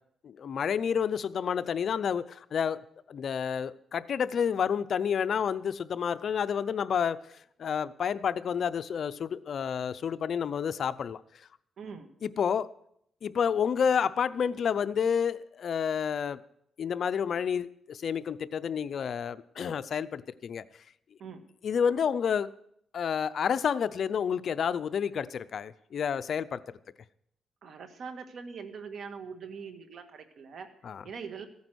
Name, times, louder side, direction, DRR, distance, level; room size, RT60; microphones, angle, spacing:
voice 1, 0.2-2.8 3.1-7.2 7.6-11.2 12.2-12.7 13.2-16.4 16.8-20.6 21.6-22.5 22.9-26.6 30.8-31.0, left 7 dB, 60° left, 14 dB, 0.5 m, -29 dB
voice 2, 11.8-12.1 21.2-21.4 27.6-30.7 31.0-31.5, right 5 dB, 65° right, 8 dB, 1.7 m, -42 dB
15.0 x 9.5 x 6.2 m, 0.71 s
cardioid pair, 110°, 0 cm